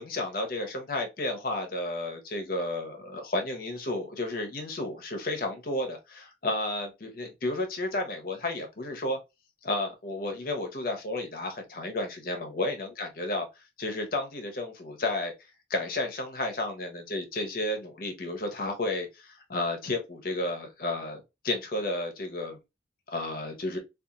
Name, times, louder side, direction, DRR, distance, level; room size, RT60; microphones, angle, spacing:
voice 1, 0.0-9.2 9.6-13.5 13.8-15.3 15.7-22.6 23.1-23.8, left 2 dB, 50° left, 0.7 m, -32 dB
2.8 x 2.3 x 2.4 m
head